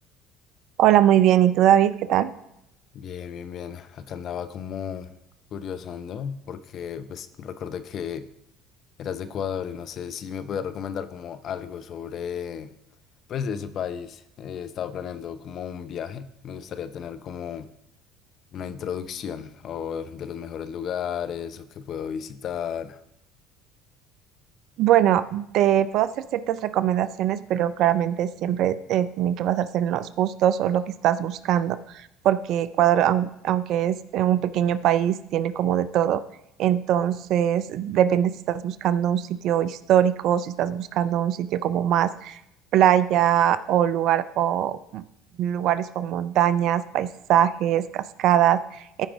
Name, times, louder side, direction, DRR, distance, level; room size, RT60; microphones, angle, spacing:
voice 1, 0.8-2.3 24.8-36.2 36.6-42.4 42.7-45.0 45.4-49.1, right 11 dB, 60° right, 0.5 m, -22 dB
voice 2, 2.9-5.1 5.5-8.3 9.0-12.7 13.3-17.7 18.5-23.0, left 8 dB, 50° left, 0.7 m, -33 dB
14.5 x 5.0 x 3.5 m
hypercardioid pair, 65°, 0 cm